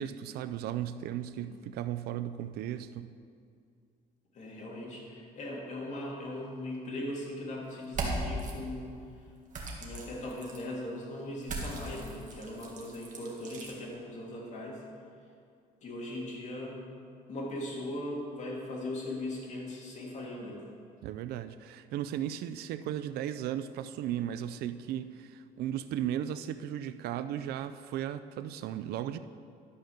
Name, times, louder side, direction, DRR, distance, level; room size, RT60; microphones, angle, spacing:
voice 1, 0.0-3.1 21.0-29.2, right 11 dB, 70° right, 11 dB, 0.4 m, -36 dB
voice 2, 4.3-9.0 9.8-14.8 15.8-16.8 17.3-20.6, left 1 dB, 45° left, -3 dB, 2.7 m, -39 dB
sound 1, 7.8-8.5 9.5-10.6 11.4-13.7, right 2 dB, 50° right, 1.9 m, -38 dB
11.5 x 5.2 x 6.5 m, 2.3 s
cardioid pair, 110°, 17 cm